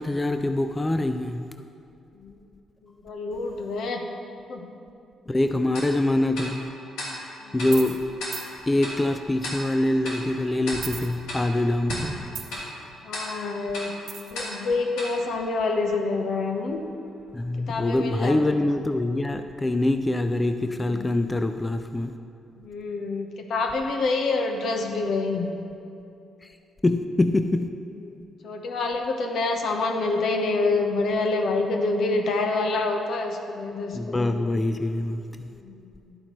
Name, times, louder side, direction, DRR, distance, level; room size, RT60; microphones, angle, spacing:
voice 1, 0.0-1.4 5.3-6.7 7.5-8.0 8.7-12.1 17.3-22.2 26.4-26.5 26.8-27.7 33.9-35.5, left 1 dB, 15° left, 8 dB, 0.4 m, -24 dB
voice 2, 2.8-4.0 4.5-4.7 7.4-7.7 13.0-13.9 14.3-16.8 17.6-18.6 20.7-21.1 22.6-25.5 28.0-34.5 35.5-36.2, left 3 dB, 70° left, 4 dB, 0.9 m, -27 dB
Tick-tock, 5.7-16.2, left 1 dB, 90° left, 2.1 m, -38 dB
sound 1, 7.7-8.0 8.3-8.5 10.7-11.6 11.9-12.7 14.1-14.4, right 5 dB, 65° right, 0.9 m, -35 dB
11.0 x 8.5 x 3.1 m, 2.6 s
cardioid pair, 90°, 0 cm